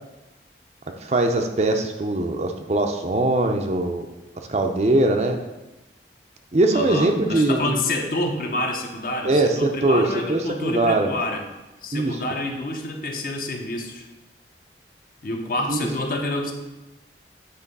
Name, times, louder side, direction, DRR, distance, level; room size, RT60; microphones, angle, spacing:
voice 1, 1.0-4.1 4.5-5.4 6.5-7.8 9.2-11.1 11.9-12.2 15.7-15.9, right 2 dB, 35° right, 4 dB, 0.5 m, -21 dB
voice 2, 6.7-11.4 11.8-14.1 15.2-16.5, left 2 dB, 50° left, 2 dB, 0.8 m, -28 dB
8.2 x 3.3 x 5.3 m, 1.0 s
head